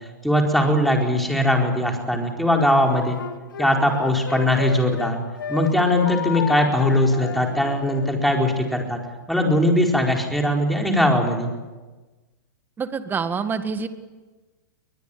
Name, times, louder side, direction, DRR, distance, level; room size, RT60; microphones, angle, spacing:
voice 1, 0.2-3.2 3.6-5.2 5.5-9.0 9.3-11.5, left 1 dB, ahead, 1 dB, 4.6 m, -20 dB
Wind instrument woodwind instrument, 2.5-5.1 5.4-8.1, left 8 dB, 85° left, 2.4 m, -32 dB
voice 2, 12.8-13.9, right 5 dB, 20° right, 10 dB, 1.8 m, -26 dB
22.5 x 21.0 x 8.7 m, 1.2 s
hypercardioid pair, 120°, 11 cm